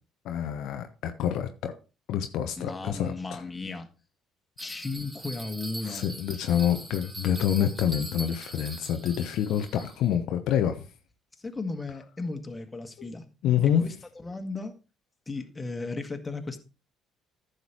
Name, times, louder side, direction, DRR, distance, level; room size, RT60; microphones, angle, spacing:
voice 1, 0.2-1.7 2.1-3.4 5.8-10.8 13.0-13.1 13.4-13.9, left 9 dB, 60° left, 0.8 m, -27 dB
voice 2, 2.6-3.9 4.6-6.0 11.4-13.3 13.6-13.9 14.2-14.7 15.3-16.6, left 3 dB, 20° left, 1.8 m, -35 dB
Bell, 4.6-10.1, right 1 dB, 20° right, 2.6 m, -42 dB
14.0 x 6.6 x 3.0 m
figure-of-eight pair, 50°, 0 cm